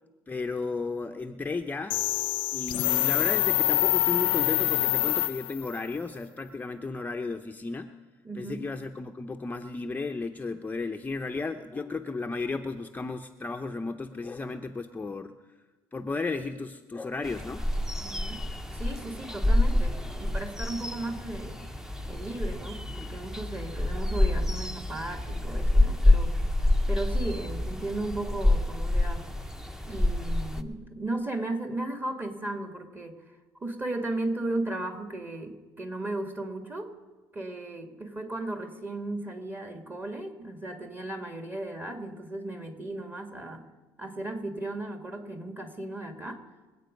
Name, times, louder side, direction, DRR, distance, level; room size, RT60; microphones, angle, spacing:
voice 1, 0.3-2.0 2.5-7.9 8.4-15.3 15.9-17.7, left 3 dB, 20° left, 6 dB, 0.7 m, -34 dB
sound 1, 1.9-5.8, left 17 dB, 70° left, 0.4 m, -25 dB
voice 2, 8.2-8.6 18.0-18.4 18.7-21.6 22.0-26.3 26.9-29.3 29.8-33.2 33.6-36.9 37.3-43.6 44.0-46.4, right 2 dB, 20° right, 5 dB, 2.2 m, -35 dB
sound 2, 17.2-30.6, left 1 dB, 5° right, 0.9 m, -27 dB
25.0 x 8.4 x 5.3 m, 1.2 s
supercardioid pair, 90°, 9 cm